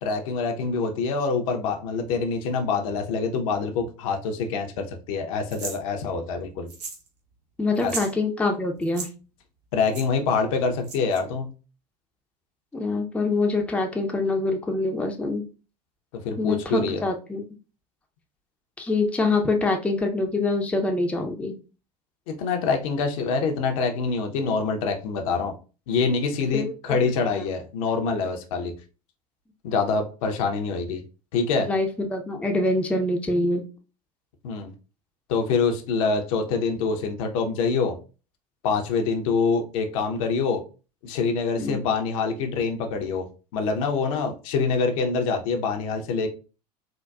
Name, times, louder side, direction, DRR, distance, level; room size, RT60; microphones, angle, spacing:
voice 1, 0.0-6.7 7.8-7.9 9.7-11.5 16.2-17.0 22.3-25.5 25.9-28.7 29.6-31.0 31.3-31.7 34.4-34.7 35.3-38.0 38.6-40.6 41.0-46.3, left 4 dB, 55° left, 4 dB, 0.6 m, -25 dB
sound 1, 5.5-5.8 6.7-7.1 7.3-7.4 7.7-8.1 8.8-9.1 9.9-10.1 10.8-11.2, right 4 dB, 75° right, 0.7 m, -35 dB
voice 2, 7.6-9.1 12.7-15.4 16.4-17.4 18.8-21.5 26.5-27.0 27.3-27.4 31.6-33.6 41.5-41.9, left 2 dB, 5° left, 3 dB, 0.5 m, -25 dB
3.8 x 2.2 x 2.2 m, 0.34 s
figure-of-eight pair, 75°, 21 cm